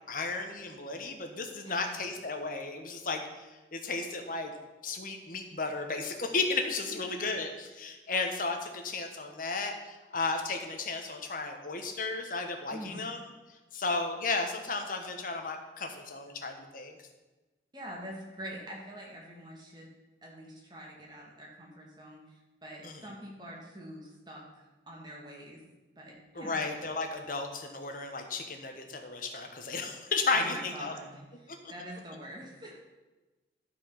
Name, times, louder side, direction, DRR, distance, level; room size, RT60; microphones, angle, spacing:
voice 1, 0.1-3.2 3.7-4.5 4.8-13.2 13.7-17.0 22.8-23.1 26.3-30.9, left 3 dB, 50° left, 4 dB, 1.1 m, -34 dB
voice 2, 12.7-13.0 17.7-19.9 20.2-22.2 22.6-25.6 26.0-26.6 30.3-31.2 31.7-32.8, equal, 25° right, -2 dB, 1.9 m, -45 dB
12.0 x 4.9 x 5.7 m, 1.2 s
head